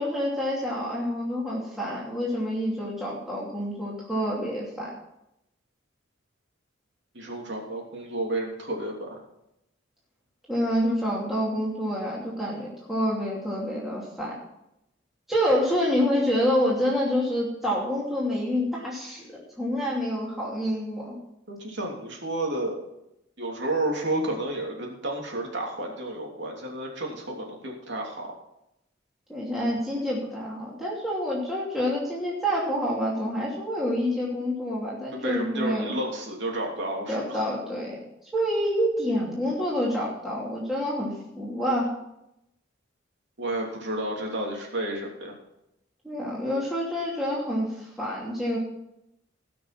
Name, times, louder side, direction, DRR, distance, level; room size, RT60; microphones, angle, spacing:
voice 1, 0.0-4.9 10.5-14.3 15.3-19.2 19.6-21.1 29.3-36.0 37.1-38.1 38.3-41.9 46.0-48.6, equal, ahead, -6 dB, 2.7 m, -27 dB
voice 2, 7.1-9.2 21.5-22.8 23.4-28.3 35.1-37.5 43.4-45.3, right 1 dB, 65° right, 0 dB, 3.1 m, -31 dB
18.0 x 6.3 x 6.0 m, 0.84 s
head